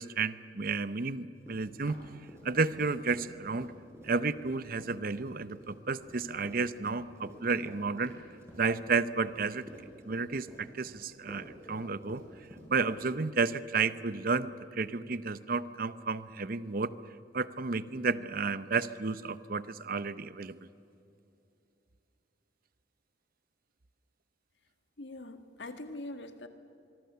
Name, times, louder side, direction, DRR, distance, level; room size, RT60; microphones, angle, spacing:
voice 1, 0.0-2.0 2.4-3.7 4.0-8.1 8.6-9.6 10.1-12.2 12.7-16.9 17.3-20.6, right 4 dB, 55° right, 14 dB, 0.8 m, -32 dB
Run, 1.4-2.9 3.1-13.1, equal, 15° right, 6.1 m, -50 dB
voice 2, 25.0-26.5, left 2 dB, 80° left, 7 dB, 1.8 m, -43 dB
25.0 x 23.5 x 6.9 m, 2.8 s
head